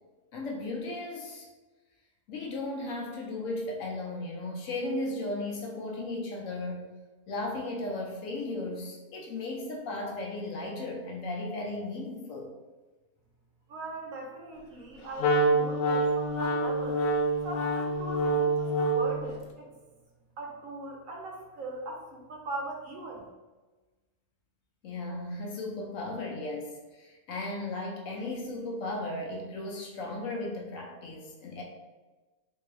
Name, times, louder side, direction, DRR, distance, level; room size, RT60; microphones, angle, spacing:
voice 1, 0.3-1.5 2.3-6.8 7.3-12.5 24.8-31.6, left 2 dB, 65° left, -1 dB, 1.0 m, -35 dB
voice 2, 13.7-17.0 17.4-19.7 20.4-23.3, right 2 dB, 65° right, 0 dB, 0.9 m, -40 dB
Wind instrument woodwind instrument, 15.2-19.2, right 2 dB, 85° left, 0.5 m, -26 dB
3.6 x 2.7 x 3.1 m, 1.2 s
omnidirectional pair, 1.6 m